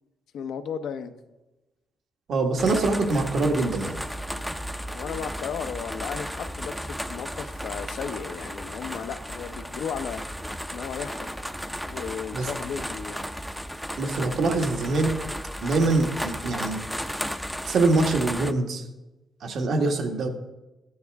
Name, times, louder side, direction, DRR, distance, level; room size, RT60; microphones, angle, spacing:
voice 1, 0.3-1.1 4.9-10.2 10.7-11.4 11.8-13.2, left 7 dB, 75° left, 8 dB, 0.7 m, -35 dB
voice 2, 2.3-4.0 12.3-12.5 14.0-15.1 15.6-16.8 17.7-18.8 19.4-20.3, right 3 dB, 65° right, 3 dB, 1.5 m, -24 dB
sound 1, 2.6-18.5, equal, ahead, 0.6 m, -34 dB
14.0 x 9.4 x 3.5 m, 1.1 s
cardioid pair, 90°, 0 cm